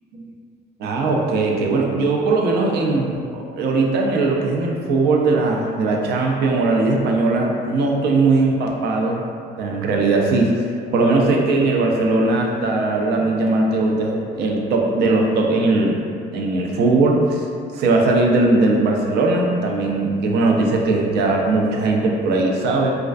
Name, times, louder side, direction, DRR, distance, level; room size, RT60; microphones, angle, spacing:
voice 1, 0.8-9.2 9.6-10.6 10.9-16.0 16.3-17.4 17.7-23.0, right 3 dB, 75° right, 0 dB, 0.4 m, -19 dB
2.3 x 2.2 x 2.4 m, 2.3 s
cardioid pair, 110°, 17 cm